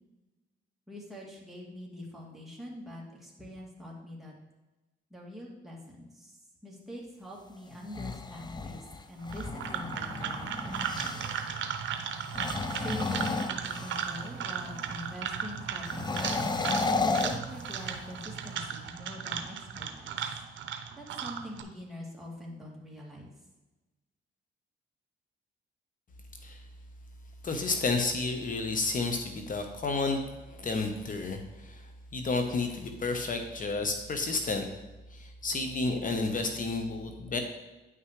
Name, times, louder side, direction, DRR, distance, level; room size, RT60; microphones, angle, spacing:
voice 1, 0.9-4.3 5.1-6.4 6.6-11.6 12.8-16.3 17.2-20.2 21.0-23.3, left 1 dB, ahead, -4 dB, 2.3 m, -44 dB
sound 1, 7.7-11.5 12.2-14.3 15.8-18.1, left 3 dB, 20° left, 0.5 m, -33 dB
sound 2, 9.2-21.6, right 7 dB, 70° right, 0.8 m, -36 dB
voice 2, 27.4-34.6 35.1-37.4, left 3 dB, 40° left, 5 dB, 1.0 m, -31 dB
9.3 x 5.8 x 3.2 m, 1.1 s
cardioid pair, 90°, 20 cm